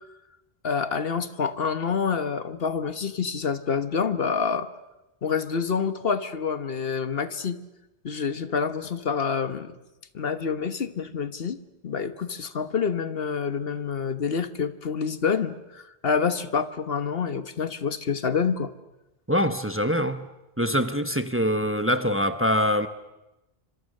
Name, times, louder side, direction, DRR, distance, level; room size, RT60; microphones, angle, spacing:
voice 1, 0.6-4.7 5.2-7.6 8.0-9.8 10.1-18.7, left 6 dB, 70° left, 12 dB, 1.4 m, -27 dB
voice 2, 19.3-20.3 20.6-22.9, equal, 15° right, 10 dB, 1.0 m, -24 dB
30.0 x 26.0 x 6.6 m, 0.97 s
omnidirectional pair, 1.0 m